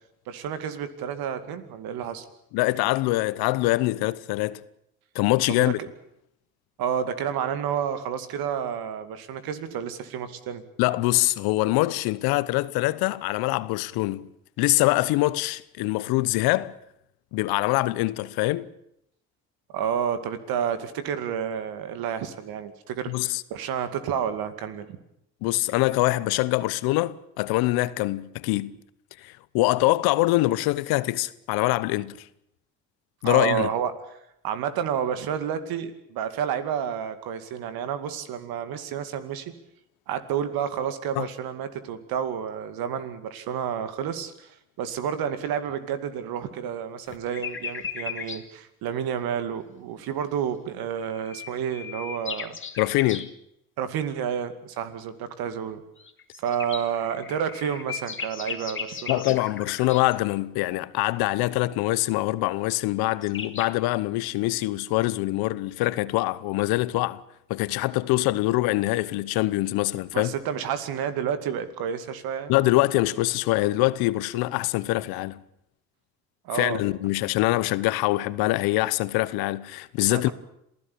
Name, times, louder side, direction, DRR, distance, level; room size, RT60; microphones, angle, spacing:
voice 1, 0.3-2.3 5.5-5.7 6.8-10.6 19.7-25.0 33.2-33.9 34.4-39.5 40.1-52.6 53.8-55.8 56.4-59.2 70.1-72.5 76.4-76.8 80.1-80.3, right 8 dB, 70° right, 2.4 m, -30 dB
voice 2, 2.5-4.6 5.1-5.8 10.8-14.3 14.6-16.7 17.3-18.7 23.1-23.4 25.4-28.7 29.2-32.3 33.2-33.7 41.1-41.3 52.8-53.3 59.1-67.2 67.5-70.3 72.5-75.4 76.5-80.3, left 19 dB, 75° left, 1.0 m, -24 dB
sound 1, 47.1-48.4 51.0-53.3 56.0-60.2 62.8-62.9 63.1-63.7, left 6 dB, 30° left, 2.2 m, -36 dB
27.0 x 16.5 x 8.6 m
hypercardioid pair, 60°, 37 cm